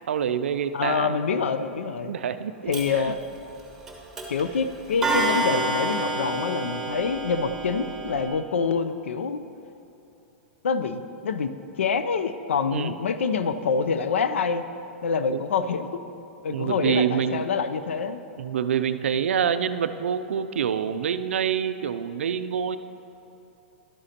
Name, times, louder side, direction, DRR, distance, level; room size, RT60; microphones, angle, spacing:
voice 1, 0.1-1.2 1.8-3.1 12.7-12.9 15.3-15.4 16.5-17.4 18.4-22.8, right 8 dB, 85° right, 11 dB, 0.4 m, -26 dB
voice 2, 0.7-2.1 2.7-3.2 4.3-9.4 10.6-14.7 15.0-15.9 16.4-18.2, left 5 dB, 90° left, 11 dB, 0.4 m, -26 dB
Clock, 2.7-2.8 3.9-4.4 5.0-8.3, right 2 dB, 5° right, 1.4 m, -28 dB
11.5 x 7.9 x 2.8 m, 2.9 s
hypercardioid pair, 125°, 7 cm